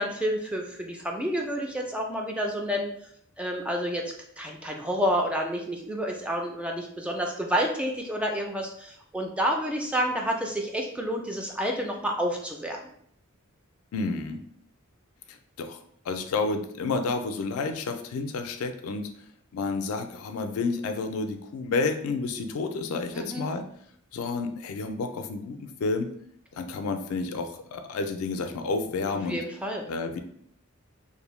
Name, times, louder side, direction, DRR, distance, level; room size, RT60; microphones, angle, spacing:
voice 1, 0.0-2.9 3.4-4.0 4.4-12.8 23.1-23.5 29.1-29.8, equal, 5° right, 1 dB, 0.3 m, -29 dB
voice 2, 13.9-14.4 15.3-19.1 19.5-23.7 24.1-26.1 26.5-29.4 29.9-30.2, left 3 dB, 80° left, 7 dB, 0.4 m, -30 dB
2.6 x 2.1 x 3.0 m, 0.65 s
head